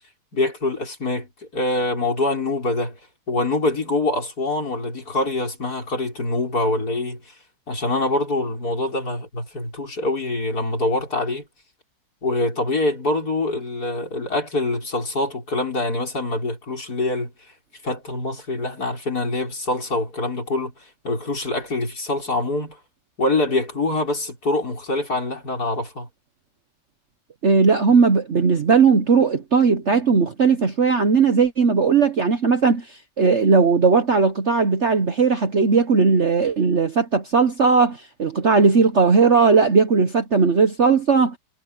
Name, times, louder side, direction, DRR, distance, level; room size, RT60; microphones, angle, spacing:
voice 1, 0.3-3.0 3.3-7.3 7.7-11.5 12.2-17.3 17.8-20.7 21.0-22.8 23.2-26.1, left 2 dB, 55° left, 6.4 m, -24 dB
voice 2, 27.4-32.8 33.2-41.4, right 5 dB, 45° right, 1.2 m, -17 dB
omnidirectional pair, 2.0 m